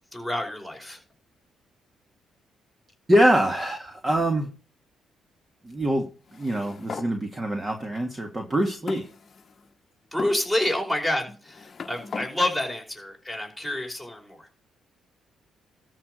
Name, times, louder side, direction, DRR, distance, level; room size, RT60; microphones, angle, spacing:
voice 1, 0.1-1.0 10.1-14.5, left 1 dB, 5° right, 2 dB, 5.2 m, -28 dB
voice 2, 3.1-4.5 5.6-6.1 6.4-9.1, right 1 dB, 20° right, 4 dB, 2.1 m, -24 dB
sound 1, 6.3-7.1 7.9-8.0 8.9-9.7 10.2-10.4 11.3-12.3, left 5 dB, 40° left, 1.1 m, -38 dB
13.0 x 4.9 x 6.4 m, 0.36 s
cardioid pair, 90°, 0 cm